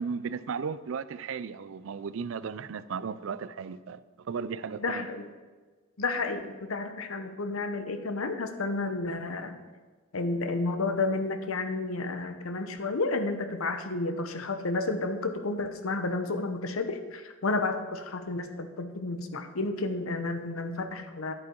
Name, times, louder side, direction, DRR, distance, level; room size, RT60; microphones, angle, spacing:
voice 1, 0.0-5.1, right 6 dB, 70° right, 0.4 m, -35 dB
voice 2, 4.8-5.3 6.0-9.6 10.1-21.3, left 3 dB, 90° left, 0.9 m, -31 dB
9.9 x 8.3 x 4.5 m
head